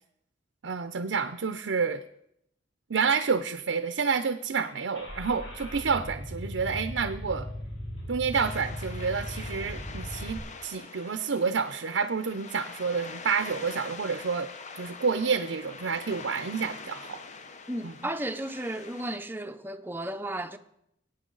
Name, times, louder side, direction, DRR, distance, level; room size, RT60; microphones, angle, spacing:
voice 1, 0.6-2.0 2.9-7.5 8.1-14.5 14.8-17.2 17.8-17.9, right 5 dB, 75° right, 0.6 m, -29 dB
Car / Engine starting, 4.9-10.4, equal, 85° left, 3.9 m, -38 dB
sound 1, 8.3-19.2, left 4 dB, 40° left, 0.8 m, -44 dB
voice 2, 17.7-20.6, right 1 dB, 10° right, 0.7 m, -34 dB
21.0 x 9.1 x 3.9 m
head